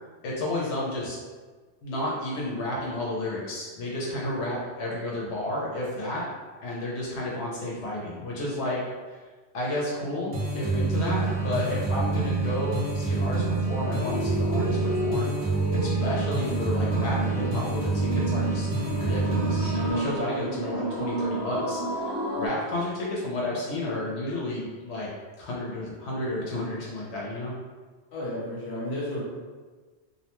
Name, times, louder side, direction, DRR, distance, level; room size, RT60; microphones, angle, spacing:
voice 1, 0.2-1.2 1.8-6.3 6.6-8.8 9.5-15.3 15.8-18.7 18.9-25.1 25.4-27.5, left 1 dB, 90° left, -4 dB, 0.9 m, -31 dB
sound 1, 10.3-19.9, right 3 dB, 85° right, 0.9 m, -27 dB
sound 2, 14.0-22.5, right 1 dB, 25° right, 0.8 m, -31 dB
voice 2, 28.1-29.2, left 1 dB, 60° left, -6 dB, 1.0 m, -33 dB
2.6 x 2.1 x 2.9 m, 1.4 s
omnidirectional pair, 1.1 m